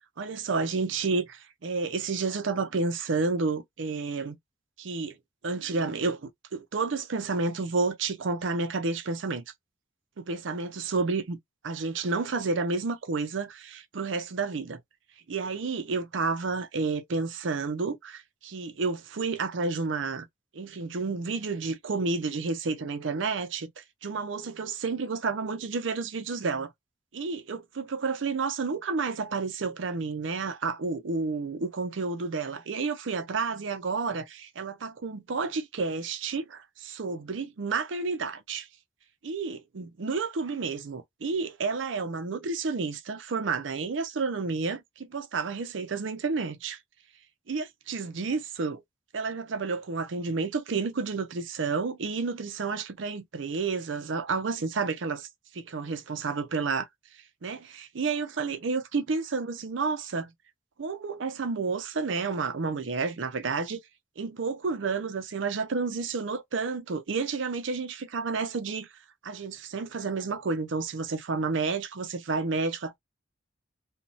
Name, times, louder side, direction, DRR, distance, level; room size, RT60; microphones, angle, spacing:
voice 1, 0.2-4.4 4.8-5.2 5.4-9.4 10.2-11.4 11.6-14.8 15.3-20.3 20.5-26.7 27.1-38.7 39.2-46.8 47.5-48.8 49.1-55.3 55.5-56.9 57.4-60.3 60.8-63.8 64.2-68.9 69.2-73.0, right 4 dB, 80° right, 0.6 m, -30 dB
3.0 x 2.2 x 2.6 m
head